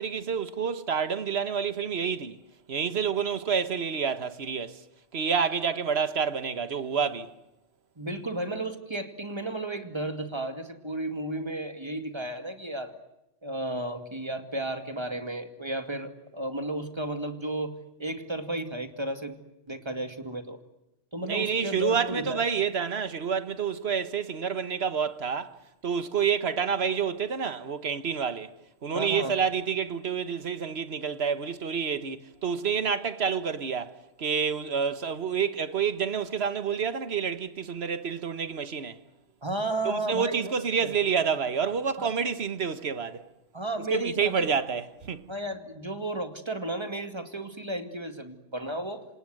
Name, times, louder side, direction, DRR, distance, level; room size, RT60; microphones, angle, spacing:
voice 1, 0.0-2.4 2.7-4.8 5.1-7.3 21.3-25.5 25.8-28.5 28.8-39.0 39.8-43.2 43.9-45.3, right 6 dB, 60° right, 1.6 m, -28 dB
voice 2, 8.0-12.9 13.4-19.4 19.7-20.6 21.1-22.5 28.9-29.4 39.4-40.5 40.8-40.9 42.0-42.1 43.5-44.5 45.3-49.1, right 1 dB, 25° right, 2.3 m, -33 dB
27.5 x 27.0 x 7.8 m
omnidirectional pair, 1.2 m